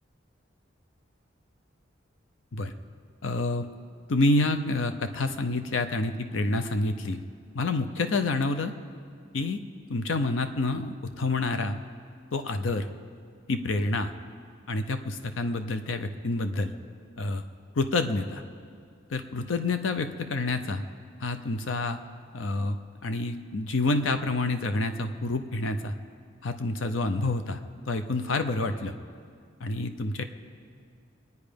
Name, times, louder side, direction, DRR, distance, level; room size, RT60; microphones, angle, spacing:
voice 1, 3.2-3.7 4.1-7.2 7.5-8.7 9.3-9.6 9.9-11.8 12.3-12.9 13.5-14.1 14.7-16.7 17.2-17.4 17.8-18.4 19.1-20.8 21.2-22.0 22.3-22.8 23.0-25.9 26.4-27.6 27.9-28.9 29.6-30.2, left 2 dB, 80° left, 8 dB, 0.7 m, -28 dB
24.0 x 9.5 x 5.2 m, 2.2 s
head